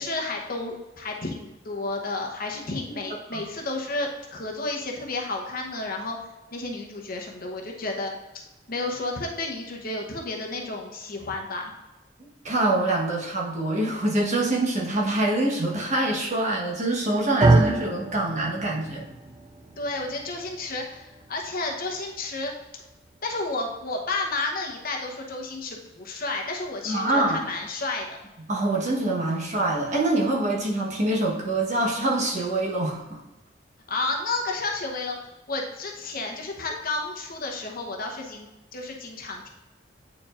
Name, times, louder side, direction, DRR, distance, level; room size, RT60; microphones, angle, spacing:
voice 1, 0.0-6.2 6.5-8.2 8.7-11.7 19.8-22.8 23.2-28.2 33.9-35.2 35.5-39.5, left 2 dB, 50° left, 1 dB, 0.9 m, -31 dB
voice 2, 12.2-19.0 26.8-27.4 28.5-33.2, right 2 dB, 40° right, -3 dB, 1.2 m, -25 dB
sound 1, 17.4-25.6, right 2 dB, 25° right, 0.3 m, -28 dB
8.7 x 4.5 x 2.5 m, 1.0 s
head